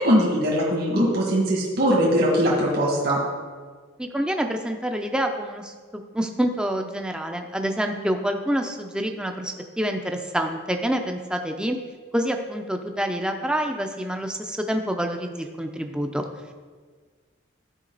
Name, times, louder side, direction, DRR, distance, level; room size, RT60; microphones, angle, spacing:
voice 1, 0.0-3.2, equal, 50° right, -4 dB, 1.8 m, -21 dB
voice 2, 4.0-11.8 12.1-16.2, equal, 5° right, 4 dB, 0.6 m, -27 dB
13.0 x 5.0 x 4.0 m, 1.5 s
head